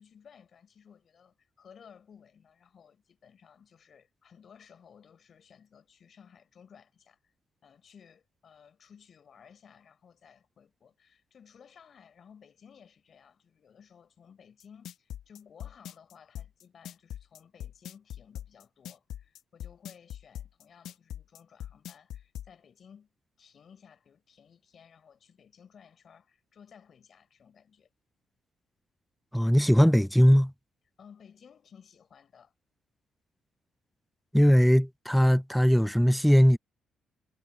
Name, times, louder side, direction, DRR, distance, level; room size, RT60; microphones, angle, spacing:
voice 1, 0.0-7.2 7.6-23.1 23.4-27.9 31.0-32.5, left 7 dB, 55° left, 4.8 m, -56 dB
sound 1, 14.6-22.5, left 11 dB, 80° left, 1.2 m, -41 dB
voice 2, 29.3-30.5 34.3-36.6, equal, ahead, 0.5 m, -20 dB
cardioid pair, 90°, 0 cm